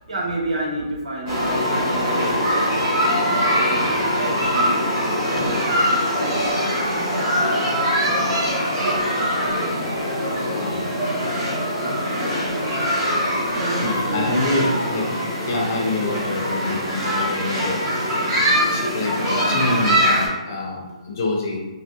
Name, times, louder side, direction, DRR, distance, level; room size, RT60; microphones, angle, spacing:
voice 1, 0.1-6.5 7.0-7.2 8.8-9.3 13.5-14.6 18.2-18.7 19.7-19.9, right 2 dB, 90° right, -2 dB, 0.9 m, -31 dB
sound 1, 1.3-20.3, equal, 15° right, 0.9 m, -22 dB
voice 2, 10.2-10.9 13.8-18.3 18.7-21.6, left 2 dB, 25° left, -1 dB, 0.4 m, -27 dB
3.3 x 2.7 x 2.3 m, 1.1 s
hypercardioid pair, 180°, 4 cm